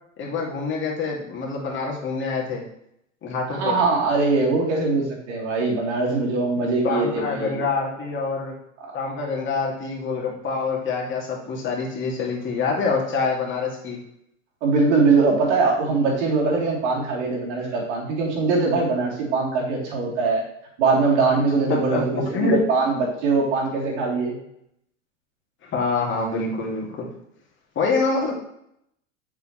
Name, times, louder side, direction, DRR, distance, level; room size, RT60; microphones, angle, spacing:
voice 1, 0.2-2.6 3.2-3.8 6.8-8.5 8.9-14.0 21.7-22.6 25.6-27.1 27.8-28.3, left 4 dB, 30° left, -2 dB, 2.5 m, -26 dB
voice 2, 3.5-7.6 8.8-8.9 14.6-20.4 20.8-24.4, right 4 dB, 60° right, -3 dB, 3.3 m, -22 dB
7.9 x 7.1 x 3.2 m, 0.75 s
figure-of-eight pair, 85°, 39 cm